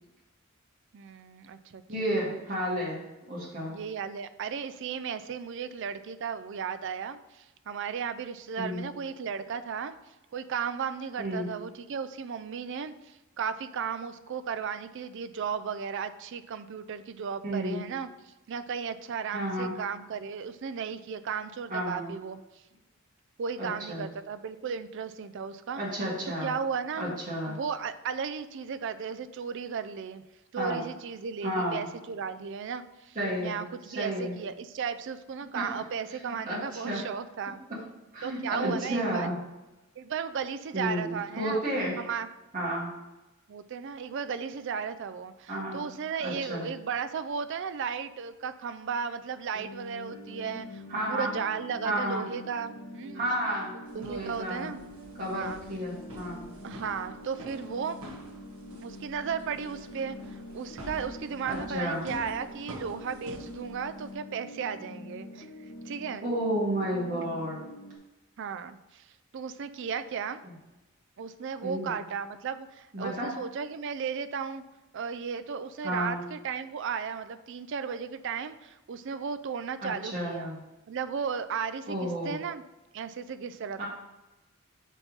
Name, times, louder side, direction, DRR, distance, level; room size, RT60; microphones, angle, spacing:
voice 1, 0.9-1.8 2.2-2.4 3.7-10.0 10.3-22.4 23.4-25.8 26.4-27.2 27.5-30.2 30.5-37.6 38.2-39.3 40.0-41.6 42.0-42.3 43.5-50.8 51.1-53.2 53.9-54.8 55.3-55.6 56.6-58.0 58.8-65.5 65.9-66.2 67.1-67.2 68.4-70.4 71.2-74.6 74.9-80.5 80.9-82.6 82.9-83.8, right 6 dB, 60° right, 11 dB, 0.4 m, -35 dB
voice 2, 1.9-3.0 3.3-3.7 8.6-8.8 11.2-11.5 17.4-17.8 19.3-19.8 21.7-22.1 23.6-24.1 25.8-26.5 27.0-27.6 30.6-30.8 31.4-31.8 33.2-33.6 33.9-34.3 35.5-35.6 36.2-37.0 38.1-39.3 40.7-42.0 42.5-42.9 45.5-45.8 46.2-46.7 50.9-51.3 51.8-52.3 53.1-54.7 55.2-56.4 61.5-62.0 66.2-67.6 70.4-70.5 71.6-71.9 72.9-73.3 75.8-76.2 79.8-80.6 81.9-82.4 83.8-83.9, equal, 40° right, -6 dB, 2.1 m, -32 dB
sound 1, 49.5-68.0, left 1 dB, 70° left, 0.9 m, -45 dB
sound 2, 53.9-64.1, equal, 80° right, 1.2 m, -47 dB
4.5 x 4.2 x 5.3 m, 1.0 s
head